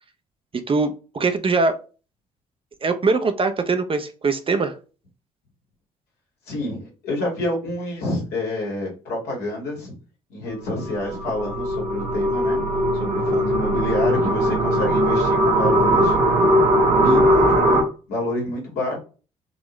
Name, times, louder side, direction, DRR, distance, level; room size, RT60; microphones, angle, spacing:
voice 1, 0.7-1.8 2.8-4.8, right 4 dB, 30° right, 7 dB, 0.7 m, -22 dB
voice 2, 6.5-10.0 10.3-12.7 12.9-16.1 16.9-17.8 18.1-19.0, left 1 dB, 70° left, -1 dB, 1.9 m, -28 dB
sound 1, 10.8-17.8, right 1 dB, 75° right, 1.2 m, -19 dB
3.9 x 3.0 x 3.0 m, 0.34 s
hypercardioid pair, 45°, 18 cm